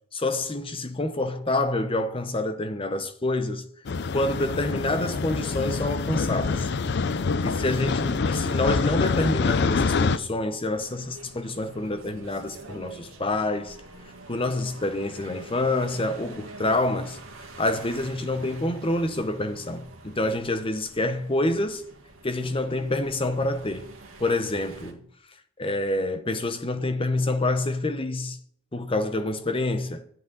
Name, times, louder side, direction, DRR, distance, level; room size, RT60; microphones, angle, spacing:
voice 1, 0.1-3.6 4.1-6.7 7.4-13.8 14.3-17.2 17.6-21.8 22.2-23.9 24.2-25.1 25.6-28.4 28.7-30.0, left 2 dB, 25° left, 0.8 m, -27 dB
sound 1, 3.9-10.2, left 4 dB, 50° left, 0.5 m, -26 dB
sound 2, 10.7-24.9, right 2 dB, 75° right, 1.8 m, -46 dB
10.5 x 8.2 x 4.0 m
head